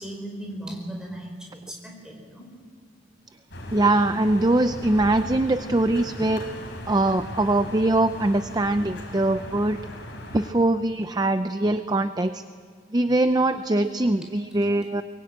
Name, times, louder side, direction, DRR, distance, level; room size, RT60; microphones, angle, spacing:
voice 1, 0.0-2.5, right 1 dB, 5° right, 1 dB, 5.0 m, -37 dB
sound 1, 3.5-10.5, left 1 dB, 60° left, 4.7 m, -38 dB
voice 2, 3.7-6.5 6.9-9.9 10.3-12.4 12.9-15.0, right 2 dB, 20° right, 10 dB, 0.6 m, -22 dB
23.5 x 22.5 x 8.8 m, 2.1 s
head